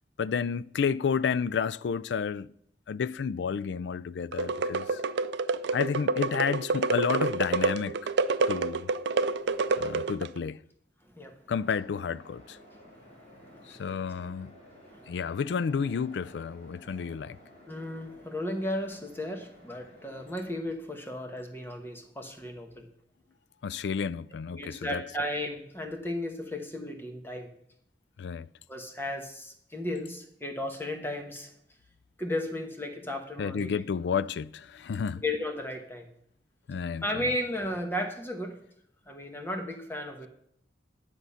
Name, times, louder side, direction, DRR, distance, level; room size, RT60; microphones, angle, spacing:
voice 1, 0.2-2.5 2.9-5.0 5.7-8.1 8.5-8.9 9.8-10.6 11.5-12.6 13.7-14.5 15.1-17.4 23.6-25.0 28.2-28.5 33.4-35.2 36.7-37.2, left 6 dB, 75° left, 0.4 m, -31 dB
sound 1, 4.3-10.4, right 4 dB, 80° right, 0.4 m, -28 dB
voice 2, 9.4-10.1 11.1-11.3 13.4-13.9 14.9-15.0 17.7-22.9 24.5-27.5 28.7-31.5 32.2-33.7 35.2-36.1 37.0-38.6 39.1-40.3, left 1 dB, 15° left, 1.2 m, -35 dB
sound 2, 11.6-20.6, equal, 40° left, 4.0 m, -54 dB
10.5 x 6.8 x 5.7 m
head